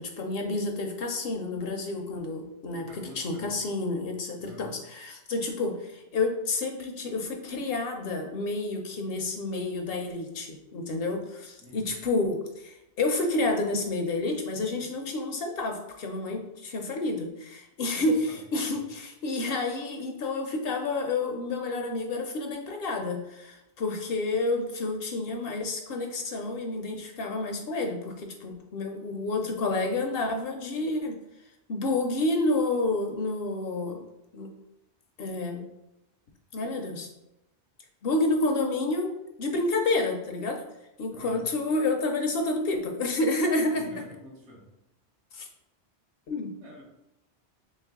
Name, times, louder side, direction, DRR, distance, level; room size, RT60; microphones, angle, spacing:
voice 1, 0.0-31.1 31.7-34.0 34.3-34.5 35.2-35.7 36.5-37.1 38.0-39.1 39.4-40.7 41.0-43.9 45.3-45.5 46.3-46.5, left 2 dB, 65° left, 3 dB, 0.7 m, -29 dB
voice 2, 2.7-3.5 4.4-4.7 11.6-12.0 17.9-18.4 41.1-41.5 43.7-44.6 46.6-46.8, equal, 75° right, -2 dB, 1.3 m, -48 dB
3.2 x 3.2 x 3.6 m, 0.91 s
omnidirectional pair, 1.2 m